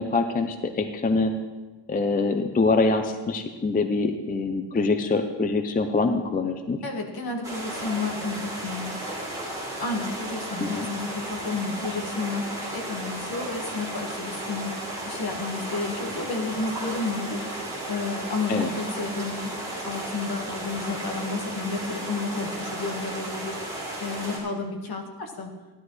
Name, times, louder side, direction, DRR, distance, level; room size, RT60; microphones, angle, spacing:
voice 1, 0.0-1.3 1.9-6.8 10.6-10.9 18.5-18.7, left 3 dB, 20° left, 6 dB, 0.4 m, -24 dB
voice 2, 6.8-9.0 9.8-14.7 15.0-19.5 19.8-25.5, left 3 dB, 55° left, 2 dB, 1.6 m, -31 dB
sound 1, 7.4-24.4, right 1 dB, 10° right, 3.0 m, -34 dB
15.5 x 11.5 x 3.1 m, 1.3 s
wide cardioid pair, 175°, 44 cm